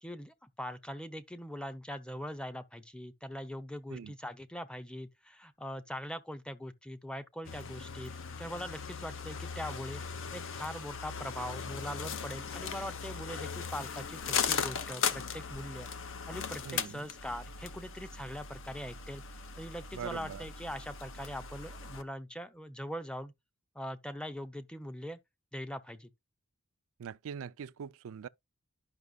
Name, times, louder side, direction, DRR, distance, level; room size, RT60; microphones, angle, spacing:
voice 1, 0.0-8.1 8.4-10.0 10.3-15.9 16.3-19.2 19.6-23.3 23.7-25.2 25.5-26.1, equal, 5° left, 0.7 m, -42 dB
sound 1, 7.4-22.0, left 6 dB, 60° left, 0.8 m, -38 dB
voice 2, 16.6-17.1 19.9-20.4 27.0-28.3, right 7 dB, 65° right, 0.4 m, -42 dB
10.5 x 5.9 x 2.3 m
head